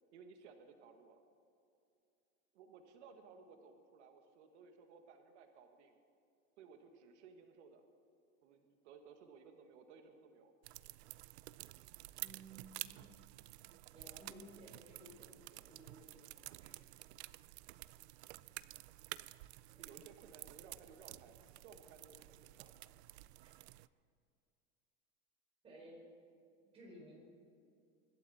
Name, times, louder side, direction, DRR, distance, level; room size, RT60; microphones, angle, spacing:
voice 1, 0.1-1.2 2.5-6.0 6.6-7.9 8.4-10.5 19.8-21.3 21.6-22.7, right 5 dB, 90° right, 5 dB, 1.7 m, -59 dB
sound 1, 10.6-23.9, right 18 dB, 70° right, 0.5 m, -52 dB
voice 2, 12.1-13.0 13.9-16.8 18.4-18.5 19.7-19.9 23.4-23.5 25.6-26.0 26.7-27.2, right 1 dB, 15° right, -3 dB, 4.2 m, -57 dB
25.0 x 12.5 x 4.2 m, 2.6 s
supercardioid pair, 180°, 34 cm